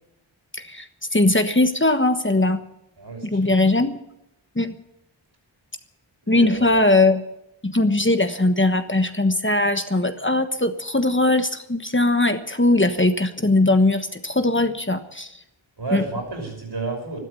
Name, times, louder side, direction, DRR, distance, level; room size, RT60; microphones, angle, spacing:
voice 1, 0.5-2.6 3.2-4.0 4.5-4.7 6.3-7.2 7.6-15.3 15.9-16.0, left 2 dB, 25° left, 8 dB, 1.3 m, -20 dB
voice 2, 3.0-3.5 6.3-6.8 15.8-17.2, right 3 dB, 55° right, 1 dB, 5.9 m, -31 dB
13.5 x 12.5 x 8.5 m, 0.86 s
wide cardioid pair, 45°, 48 cm